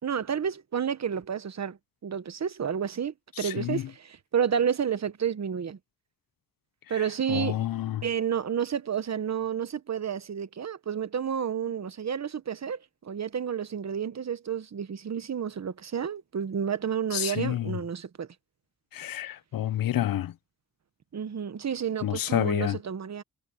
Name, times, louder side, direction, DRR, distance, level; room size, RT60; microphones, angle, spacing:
voice 1, 0.0-5.8 6.9-7.6 8.0-18.3 21.1-23.2, right 8 dB, 50° right, 1.2 m, -30 dB
voice 2, 3.4-3.8 7.3-8.0 17.1-17.8 18.9-20.3 22.0-22.8, left 12 dB, 75° left, 0.7 m, -29 dB
wide cardioid pair, 105°, 35 cm